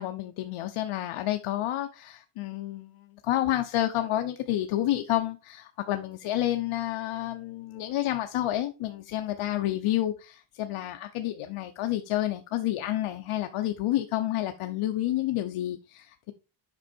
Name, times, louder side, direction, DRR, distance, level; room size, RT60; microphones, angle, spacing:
voice 1, 0.0-16.3, left 13 dB, 85° left, 0.9 m, -29 dB
8.0 x 5.5 x 4.4 m
cardioid pair, 175°, 49 cm